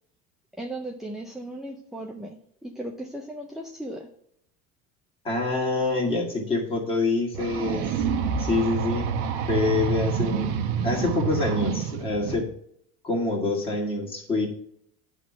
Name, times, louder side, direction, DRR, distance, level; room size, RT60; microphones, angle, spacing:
voice 1, 0.6-2.4 2.6-4.1, right 1 dB, ahead, 0 dB, 0.5 m, -36 dB
voice 2, 5.2-8.1 8.4-9.1 9.5-10.5 10.8-12.5 13.0-14.5, left 3 dB, 15° left, -2 dB, 2.1 m, -26 dB
sound 1, 7.3-12.4, right 7 dB, 65° right, 1.1 m, -28 dB
10.5 x 3.7 x 6.0 m, 0.69 s
cardioid pair, 165°, 31 cm